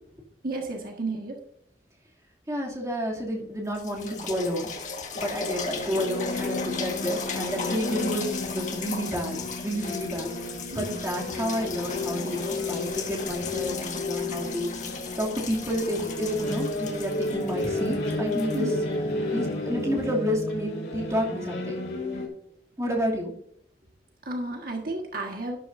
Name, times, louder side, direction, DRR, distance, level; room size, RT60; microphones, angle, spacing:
voice 1, 0.4-1.4 10.7-11.0 18.5-18.7 24.2-25.6, right 2 dB, 55° right, 1 dB, 1.6 m, -32 dB
voice 2, 2.5-4.7 5.2-10.3 10.7-14.7 15.2-18.7 19.3-21.8 22.8-23.3, equal, 20° right, -3 dB, 2.6 m, -30 dB
sound 1, 3.2-3.3 3.7-19.4 20.0-20.1, left 4 dB, 45° left, 1.6 m, -37 dB
sound 2, 5.2-22.3, left 1 dB, 75° left, 3.5 m, -32 dB
12.0 x 11.5 x 2.6 m, 0.67 s
head